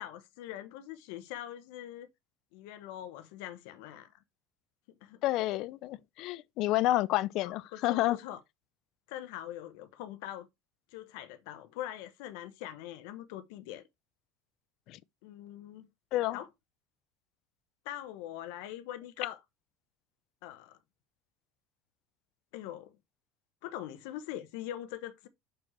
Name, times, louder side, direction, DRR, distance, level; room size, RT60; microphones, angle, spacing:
voice 1, 0.0-2.1 2.5-4.1 5.0-5.2 7.4-8.4 9.1-10.5 10.9-13.8 15.2-15.9 16.3-16.5 17.8-19.4 20.4-20.8 22.5-23.0 23.6-25.3, left 12 dB, 75° left, 0.8 m, -42 dB
voice 2, 5.2-8.2 14.9-15.0 16.1-16.4, left 16 dB, 55° left, 0.5 m, -29 dB
6.2 x 4.7 x 4.3 m
cardioid pair, 145°, 0 cm